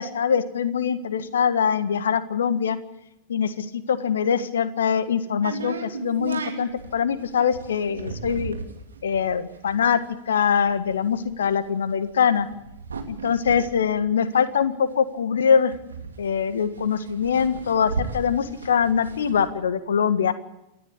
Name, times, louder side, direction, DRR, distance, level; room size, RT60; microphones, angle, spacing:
voice 1, 0.0-2.8 3.3-8.5 9.0-10.0 10.3-12.5 13.1-15.7 16.2-20.3, left 7 dB, 65° left, 12 dB, 1.6 m, -23 dB
sound 1, 5.4-14.9 15.2-15.3 15.5-19.5, right 4 dB, 70° right, 2.7 m, -36 dB
29.0 x 13.0 x 8.6 m, 0.88 s
figure-of-eight pair, 90°, 0 cm